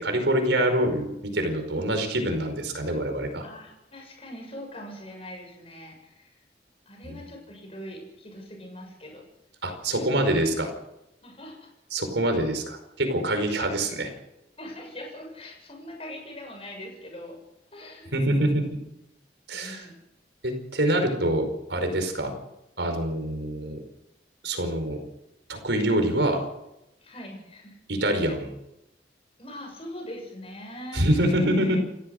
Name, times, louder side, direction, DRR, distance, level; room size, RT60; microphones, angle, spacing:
voice 1, 0.0-3.4 7.0-7.2 9.6-10.7 11.9-14.1 18.1-18.7 19.5-19.9 20.4-22.3 22.8-23.8 24.4-25.0 25.5-26.4 27.9-28.5 30.9-31.8, right 1 dB, 80° right, 6 dB, 5.1 m, -25 dB
voice 2, 1.7-2.2 3.4-6.4 6.9-9.2 9.9-10.4 11.2-11.7 14.6-17.4 17.7-18.1 19.5-19.9 21.0-21.2 27.0-27.8 28.2-28.3 29.4-31.2, left 1 dB, 30° left, 2 dB, 7.2 m, -42 dB
29.0 x 14.0 x 6.6 m, 0.87 s
head